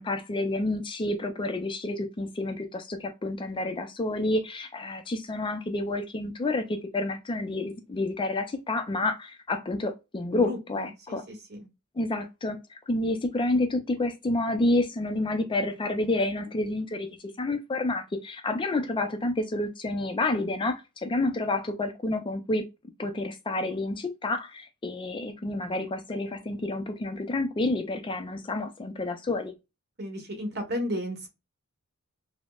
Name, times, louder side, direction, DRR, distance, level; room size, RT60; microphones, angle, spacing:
voice 1, 0.0-11.2 12.0-17.1 17.4-22.7 23.0-29.5, left 2 dB, 20° left, 0.4 m, -29 dB
voice 2, 10.3-11.7 30.0-31.3, equal, 50° right, 1.1 m, -34 dB
5.1 x 2.1 x 2.3 m
head